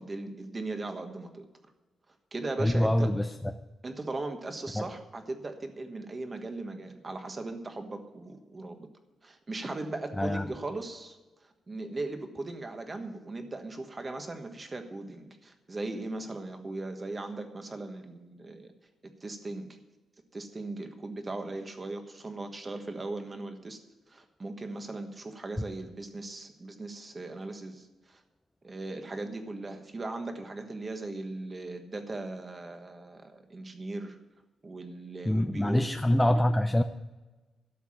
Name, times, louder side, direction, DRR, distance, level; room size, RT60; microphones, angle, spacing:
voice 1, 0.0-1.5 2.3-3.1 3.8-8.9 9.2-11.2 11.4-18.7 19.2-19.7 20.3-23.8 24.1-28.2 28.6-34.2 34.6-35.8, right 2 dB, 20° right, 6 dB, 1.3 m, -38 dB
voice 2, 2.6-3.3 4.8-4.9 10.2-10.5 35.3-36.8, left 1 dB, 5° left, 6 dB, 0.4 m, -25 dB
13.0 x 7.1 x 8.6 m, 1.1 s
wide cardioid pair, 165°, 0 cm